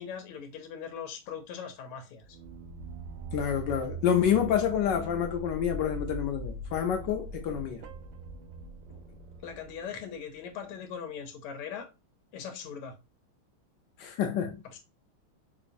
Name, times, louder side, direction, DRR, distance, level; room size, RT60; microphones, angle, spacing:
voice 1, 0.0-2.3 8.9-9.0 9.4-11.9 12.3-13.0 14.7-14.8, left 7 dB, 90° left, 1.6 m, -40 dB
sound 1, 2.2-10.8, right 2 dB, 75° right, 1.4 m, -42 dB
voice 2, 3.3-7.8 14.0-14.6, left 9 dB, 75° left, 1.1 m, -28 dB
4.1 x 2.8 x 2.5 m
omnidirectional pair, 2.4 m